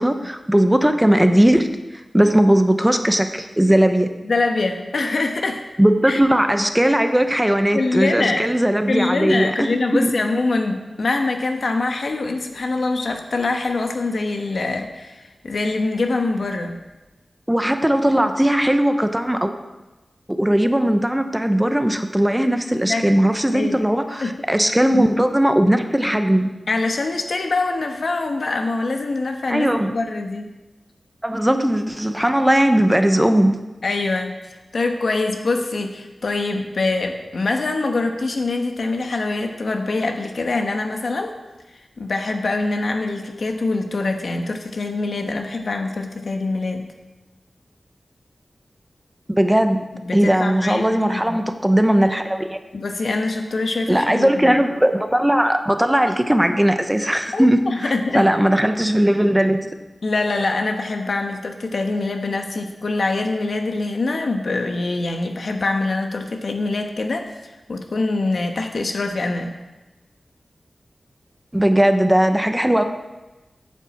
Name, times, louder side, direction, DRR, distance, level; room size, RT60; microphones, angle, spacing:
voice 1, 0.0-4.1 5.8-10.1 17.5-19.5 20.3-26.5 29.5-30.0 31.2-33.6 49.3-52.6 53.9-59.7 71.5-72.8, right 1 dB, 10° right, 7 dB, 0.9 m, -18 dB
voice 2, 4.2-5.6 6.1-6.2 7.7-8.5 8.9-16.8 22.9-23.0 23.5-23.8 24.2-24.3 26.7-30.5 33.8-34.5 34.7-41.3 42.0-46.9 50.0-51.4 52.7-54.6 57.3-58.3 60.0-67.3 67.7-69.5, left 3 dB, 70° left, 4 dB, 1.2 m, -24 dB
9.3 x 7.3 x 7.2 m, 1.1 s
wide cardioid pair, 70°, 0 cm